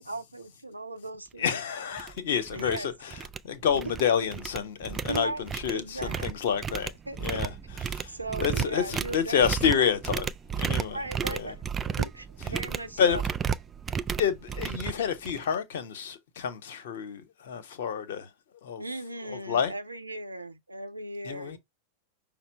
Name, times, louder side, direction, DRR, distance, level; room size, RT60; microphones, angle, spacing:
voice 1, 0.0-1.6 2.5-2.9 3.7-3.9 5.1-6.3 7.1-7.4 8.1-9.9 10.9-11.6 11.8-13.2 18.8-21.6, right 2 dB, 85° right, 0.5 m, -37 dB
voice 2, 1.4-10.3 10.5-11.6 12.4-12.5 13.0-13.2 14.2-18.3 18.6-18.8 19.2-19.7 21.2-21.6, left 7 dB, 60° left, 0.9 m, -29 dB
sound 1, 1.4-1.5 2.0-2.2 2.5-2.8 3.1-4.0 4.3-15.5, right 7 dB, 20° right, 0.3 m, -33 dB
5.8 x 2.0 x 4.4 m
figure-of-eight pair, 90°, 0 cm